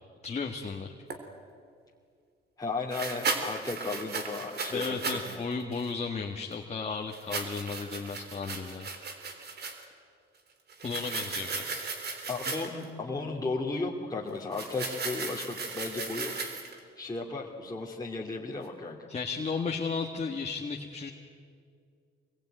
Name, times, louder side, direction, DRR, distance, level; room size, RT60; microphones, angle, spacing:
voice 1, 0.2-0.9 4.7-8.9 10.8-11.9 19.1-21.1, left 5 dB, 35° left, 2 dB, 1.9 m, -34 dB
sound 1, 1.1-1.2 2.9-5.4 5.7-5.9 7.1-9.8 10.7-12.8 14.5-16.8, right 4 dB, 55° right, 3.7 m, -36 dB
voice 2, 2.6-5.4 12.3-16.4 17.0-19.1, left 3 dB, 20° left, -2 dB, 2.7 m, -35 dB
25.5 x 21.5 x 9.3 m, 2.2 s
cardioid pair, 90°, 20 cm